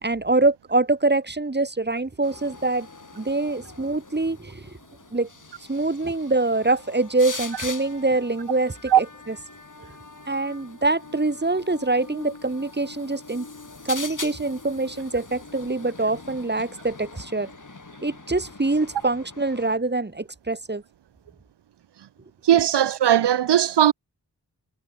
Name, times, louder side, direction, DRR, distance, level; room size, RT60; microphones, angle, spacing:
voice 1, 0.0-2.9 3.1-4.7 5.1-5.3 5.7-9.4 10.3-13.5 13.8-17.5 18.0-20.8, right 2 dB, 25° right, 2.3 m, -24 dB
sound 1, 2.2-19.8, left 3 dB, 50° left, 5.4 m, -42 dB
voice 2, 22.4-23.9, right 10 dB, 80° right, 0.6 m, -18 dB
wide cardioid pair, 80°, 40 cm